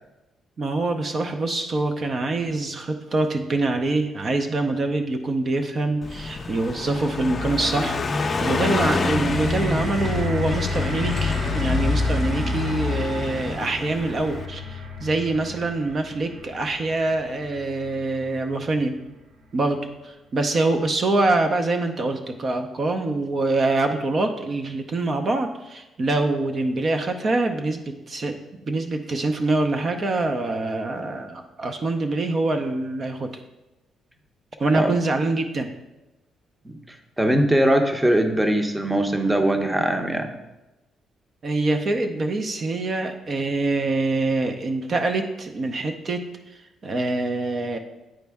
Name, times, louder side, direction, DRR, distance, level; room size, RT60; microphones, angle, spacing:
voice 1, 0.6-18.9 19.5-28.3 28.6-33.3 34.6-35.7 41.4-47.8, right 2 dB, 45° right, 5 dB, 0.6 m, -25 dB
Car passing by, 6.0-14.5, left 3 dB, 35° left, 0.6 m, -27 dB
sound 1, 8.6-18.8 19.6-19.7, left 3 dB, 85° right, 0.9 m, -33 dB
voice 2, 37.2-40.3, right 1 dB, 10° right, 5 dB, 0.7 m, -21 dB
9.1 x 4.2 x 3.5 m, 1.0 s
cardioid pair, 90°, 0 cm